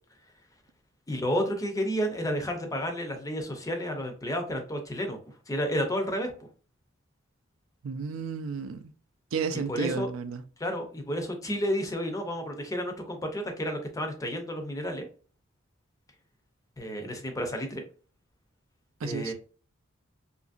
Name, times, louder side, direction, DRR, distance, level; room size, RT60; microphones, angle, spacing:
voice 1, 1.1-5.2 5.5-6.3 9.5-10.1 10.6-15.1 16.8-17.8 19.0-19.3, equal, 15° left, 0.5 m, -31 dB
voice 2, 7.8-8.9 9.3-10.4 19.0-19.3, right 5 dB, 75° right, 0.4 m, -32 dB
2.8 x 2.5 x 2.4 m
head